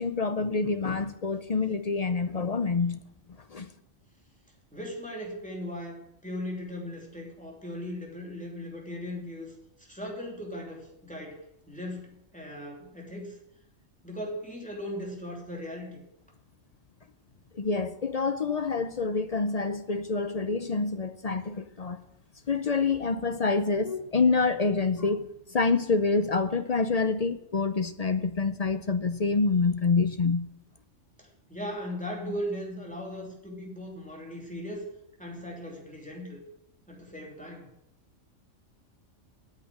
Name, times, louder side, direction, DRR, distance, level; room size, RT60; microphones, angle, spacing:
voice 1, 0.0-3.0 3.5-3.7 17.5-22.0 22.5-30.5, left 4 dB, 45° left, 0.5 m, -27 dB
voice 2, 4.7-9.5 9.8-11.4 11.7-13.4 14.0-16.0 31.2-34.8 35.2-36.4 36.9-37.7, equal, 5° left, 3.0 m, -38 dB
8.9 x 8.3 x 9.4 m
omnidirectional pair, 1.3 m